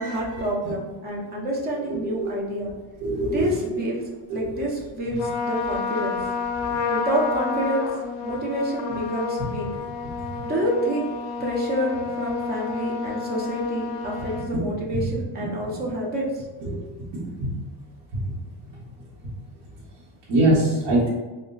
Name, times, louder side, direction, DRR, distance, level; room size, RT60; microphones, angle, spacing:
voice 1, 0.0-2.7 3.3-4.0 4.3-6.2 6.9-7.9 8.2-9.7 10.4-11.1 11.4-16.4, right 1 dB, 25° right, -3 dB, 0.3 m, -28 dB
voice 2, 2.0-2.3 3.0-3.6 4.3-4.5 16.7-16.8 20.3-21.1, right 1 dB, 45° right, -8 dB, 0.9 m, -22 dB
Trumpet, 5.2-14.5, left 5 dB, 65° left, 0.6 m, -30 dB
4.0 x 2.1 x 2.2 m, 1.2 s
cardioid pair, 155°, 50 cm